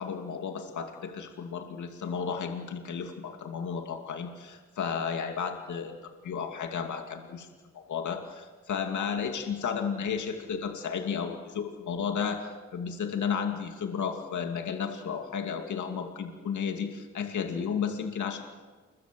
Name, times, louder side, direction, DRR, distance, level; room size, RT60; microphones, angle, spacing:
voice 1, 0.0-7.5 7.7-18.4, left 6 dB, 80° left, 4 dB, 2.5 m, -33 dB
29.0 x 22.0 x 7.7 m, 1.4 s
wide cardioid pair, 135°, 29 cm